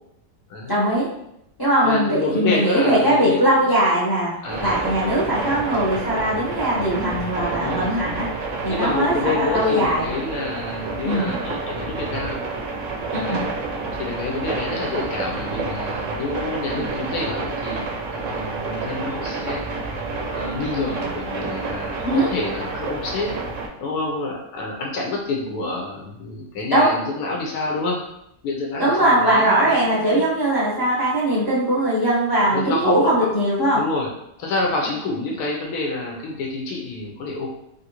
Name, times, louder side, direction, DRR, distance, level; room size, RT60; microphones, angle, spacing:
voice 1, 0.7-1.1 1.6-8.3 8.6-10.1 11.0-11.3 13.1-13.4 22.0-22.3 26.7-26.9 28.8-33.8, right 1 dB, 35° left, -7 dB, 0.3 m, -20 dB
voice 2, 1.8-3.6 4.4-4.7 7.5-7.9 8.7-12.4 13.2-13.4 13.9-17.8 18.1-19.6 20.3-23.3 23.8-28.0 28.4-30.2 32.5-33.3 33.7-34.1 34.4-37.5, left 3 dB, 75° left, -1 dB, 1.1 m, -28 dB
sound 1, 4.5-23.7, right 3 dB, 65° right, 0.8 m, -29 dB
3.4 x 2.5 x 2.9 m, 0.79 s
omnidirectional pair, 1.8 m